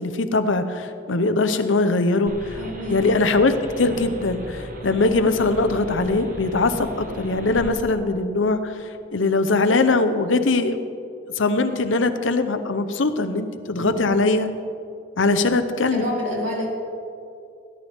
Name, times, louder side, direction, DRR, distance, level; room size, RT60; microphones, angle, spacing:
voice 1, 0.0-8.8 9.1-10.8 11.4-14.5 15.2-16.0, left 3 dB, 80° left, 9 dB, 0.8 m, -21 dB
sound 1, 2.3-7.7, right 1 dB, 45° right, 1.4 m, -37 dB
voice 2, 2.6-3.0 13.7-14.1 15.2-15.4 15.9-16.7, left 1 dB, 80° right, -4 dB, 3.5 m, -28 dB
17.5 x 11.0 x 3.6 m, 2.5 s
head